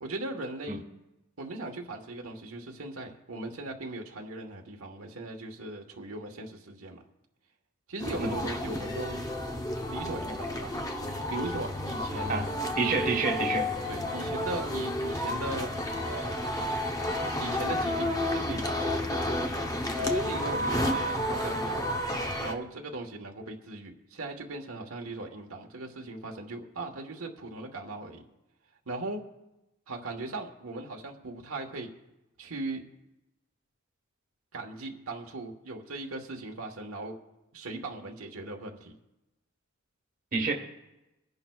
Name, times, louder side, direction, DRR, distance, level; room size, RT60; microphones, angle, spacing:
voice 1, 0.0-0.8 1.4-7.0 7.9-9.2 9.9-10.7 11.3-12.3 13.9-15.7 16.1-16.5 17.3-19.5 20.0-22.0 22.4-28.2 28.9-29.2 29.9-31.9 32.4-32.8 34.5-37.1 37.5-38.9, right 2 dB, 75° right, 2 dB, 1.3 m, -38 dB
sound 1, 8.0-22.5, left 1 dB, 15° left, 0.7 m, -31 dB
voice 2, 12.8-13.7 40.3-40.5, right 4 dB, 40° right, 2 dB, 1.4 m, -28 dB
24.5 x 10.5 x 2.4 m, 0.97 s
head